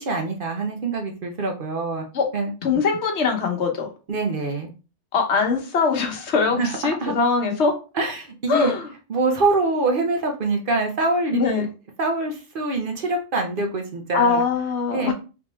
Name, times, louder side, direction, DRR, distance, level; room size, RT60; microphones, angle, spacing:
voice 1, 0.0-2.0 2.3-2.5 4.1-4.7 6.6-7.1 7.9-8.7 9.1-11.7 12.0-14.4 14.9-15.1, right 3 dB, 50° right, 2 dB, 0.9 m, -24 dB
voice 2, 2.6-3.9 5.1-7.8 8.5-8.9 11.3-11.7 14.1-15.1, left 5 dB, 70° left, 4 dB, 1.1 m, -22 dB
3.5 x 3.0 x 3.0 m, 0.32 s
omnidirectional pair, 1.2 m